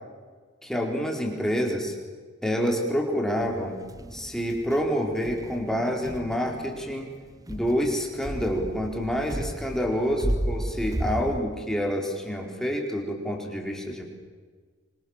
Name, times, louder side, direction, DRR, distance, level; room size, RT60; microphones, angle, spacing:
voice 1, 0.6-1.9 2.4-3.8 4.1-7.1 7.5-14.0, equal, 5° left, 0 dB, 4.4 m, -27 dB
sound 1, 3.4-11.4, right 1 dB, 20° right, 0.7 m, -34 dB
27.0 x 27.0 x 7.4 m, 1.5 s
head